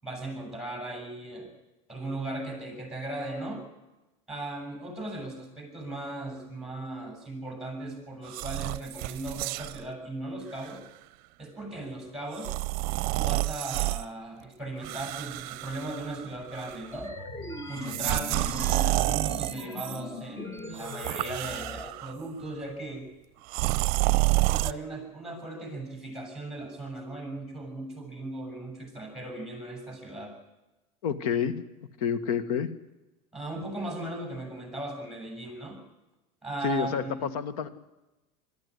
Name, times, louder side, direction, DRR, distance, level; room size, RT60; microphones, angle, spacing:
voice 1, 0.0-1.5 1.9-3.6 4.3-10.8 11.4-12.5 13.2-17.1 17.7-18.9 19.2-23.1 24.5-30.3 33.3-35.8 36.4-37.3, right 2 dB, 5° right, 4 dB, 7.2 m, -37 dB
sound 1, 8.3-9.8 10.5-10.7 12.3-14.1 14.8-16.3 16.5-17.0 17.8-20.0 20.7-22.1 23.5-24.7, right 23 dB, 55° right, 0.7 m, -29 dB
sound 2, 16.9-21.9, left 2 dB, 15° left, 1.7 m, -39 dB
voice 2, 31.0-31.6 32.0-32.7 36.6-37.7, left 7 dB, 80° left, 12 dB, 1.7 m, -28 dB
21.5 x 13.5 x 9.9 m, 1.0 s
supercardioid pair, 130°, 19 cm